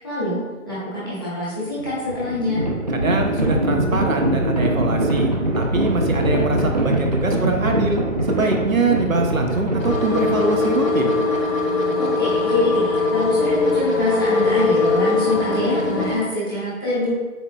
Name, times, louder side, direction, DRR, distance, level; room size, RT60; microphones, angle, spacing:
voice 1, 0.0-0.4 0.6-2.6 12.0-17.2, left 1 dB, 15° left, -10 dB, 1.0 m, -25 dB
Livestock farm animals working animals, 1.7-10.8, right 1 dB, 30° right, 0.6 m, -22 dB
voice 2, 2.9-8.0 8.3-11.2, right 3 dB, 80° right, 3 dB, 0.8 m, -23 dB
sound 1, 9.8-16.2, left 3 dB, 75° left, 1.1 m, -21 dB
7.1 x 3.0 x 2.2 m, 1.2 s
figure-of-eight pair, 155°, 40 cm